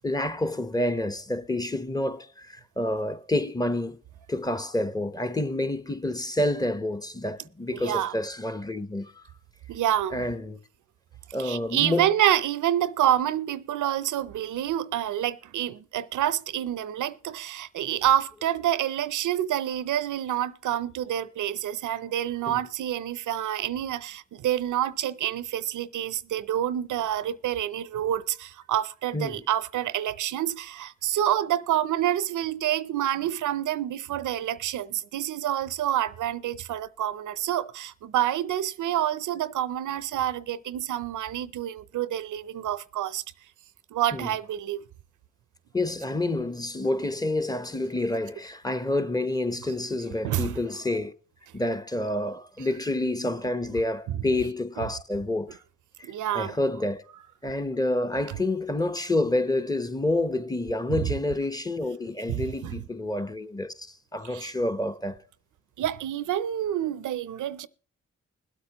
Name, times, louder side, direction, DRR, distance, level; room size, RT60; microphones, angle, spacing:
voice 1, 0.0-4.0 4.3-9.2 10.1-10.6 11.3-12.1 22.5-22.6 29.1-29.4 44.1-44.3 45.7-51.1 51.5-55.6 56.0-57.0 57.4-65.2, left 1 dB, 15° left, 0.9 m, -28 dB
voice 2, 7.7-8.1 9.7-10.2 11.4-43.2 43.9-44.8 50.2-50.6 54.1-54.2 54.8-54.9 56.0-56.6 60.9-61.1 62.3-62.8 64.2-64.5 65.8-67.7, right 11 dB, 85° right, 0.6 m, -28 dB
21.0 x 8.2 x 3.0 m
cardioid pair, 55°, 29 cm